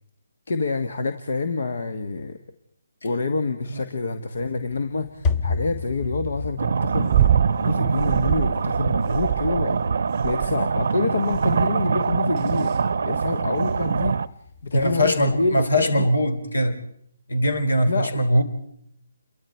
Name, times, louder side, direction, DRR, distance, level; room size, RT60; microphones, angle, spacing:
voice 1, 0.5-2.4 3.0-7.1 7.6-9.8 10.2-12.8 13.0-14.2 14.6-16.1 17.8-18.2, left 3 dB, 60° left, 10 dB, 1.5 m, -27 dB
sound 1, 4.3-15.7, left 4 dB, 20° left, 1.0 m, -35 dB
sound 2, 6.6-14.3, right 5 dB, 55° right, 0.8 m, -24 dB
sound 3, 7.1-7.5 8.0-8.6 9.1-9.7 10.2-10.7 11.3-11.7 12.4-12.7 13.7-13.8, right 11 dB, 30° right, 0.8 m, -23 dB
voice 2, 14.7-16.8 17.3-18.4, equal, 75° left, 9 dB, 3.6 m, -21 dB
28.5 x 22.5 x 4.5 m, 0.69 s
figure-of-eight pair, 145°, 0 cm